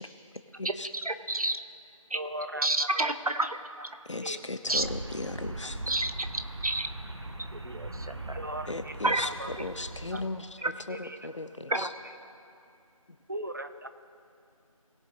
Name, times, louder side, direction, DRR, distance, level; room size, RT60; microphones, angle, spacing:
voice 1, 1.0-1.6 2.1-2.2 2.6-3.6 4.7-4.8 5.9-6.1 6.6-6.9 7.5-8.4 9.0-9.3 9.6-9.7 10.6-10.7 11.7-11.9, right 2 dB, 85° right, 8 dB, 1.0 m, -29 dB
voice 2, 2.1-3.1 3.4-3.5 4.2-4.4 8.3-8.9 9.2-9.5 10.1-10.2 10.6-11.2 13.3-13.9, right 1 dB, 35° right, 9 dB, 0.6 m, -38 dB
voice 3, 4.1-5.8 8.7-9.3 9.6-10.5 10.9-11.9, left 2 dB, 55° left, 10 dB, 0.8 m, -36 dB
sound 1, 4.7-10.3, right 1 dB, 50° right, 1.1 m, -40 dB
19.5 x 6.8 x 3.8 m, 2.5 s
figure-of-eight pair, 165°, 18 cm